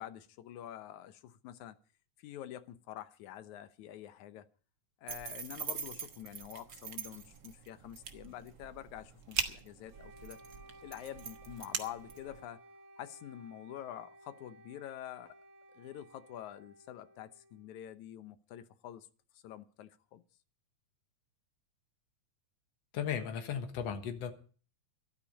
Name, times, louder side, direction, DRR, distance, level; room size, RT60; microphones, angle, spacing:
voice 1, 0.0-1.8 2.2-4.5 5.0-10.4 10.8-12.6 13.0-15.4 15.7-19.1 19.3-20.2, left 11 dB, 85° left, 2.3 m, -47 dB
sound 1, 5.1-12.5, right 6 dB, 50° right, 1.5 m, -42 dB
Wind instrument woodwind instrument, 9.9-17.9, right 1 dB, 65° right, 3.8 m, -57 dB
voice 2, 22.9-24.3, left 8 dB, 65° left, 2.4 m, -36 dB
14.0 x 13.0 x 5.3 m
omnidirectional pair, 3.3 m